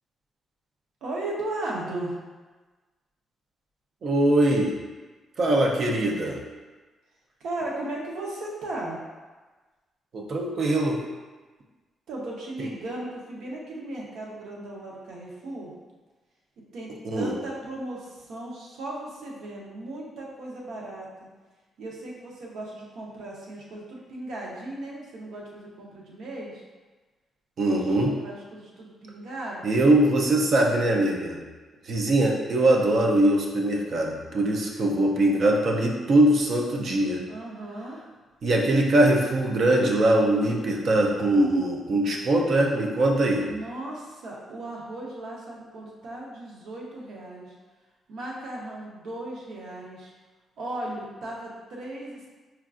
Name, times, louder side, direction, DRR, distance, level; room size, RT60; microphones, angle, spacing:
voice 1, 1.0-2.1 7.4-9.0 12.1-15.7 16.7-21.1 21.8-26.6 27.6-29.8 37.3-38.0 43.4-47.5 48.1-50.1 50.6-52.3, right 2 dB, 75° right, -3 dB, 0.7 m, -36 dB
voice 2, 4.0-4.8 5.4-6.4 10.1-11.0 17.1-17.3 27.6-28.2 29.6-31.4 31.9-37.2 38.4-43.5, right 1 dB, 45° right, 0 dB, 0.5 m, -22 dB
4.4 x 2.3 x 2.4 m, 1.3 s
cardioid pair, 170°, 0 cm